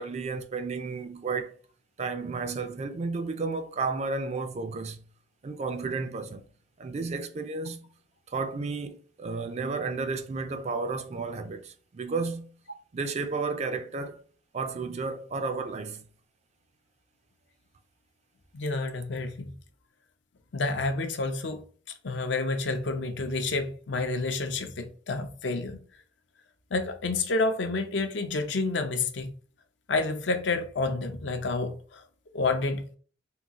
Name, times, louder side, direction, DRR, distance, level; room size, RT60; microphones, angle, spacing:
voice 1, 0.0-1.6 2.0-5.0 5.4-6.4 6.8-7.9 8.3-12.5 12.9-14.2 14.5-16.1, right 4 dB, 35° right, 0.4 m, -32 dB
voice 2, 18.5-19.5 20.5-21.6 22.0-25.8 26.7-29.3 29.9-32.0 32.3-33.0, left 3 dB, 70° left, 0.6 m, -29 dB
3.7 x 2.3 x 2.8 m
head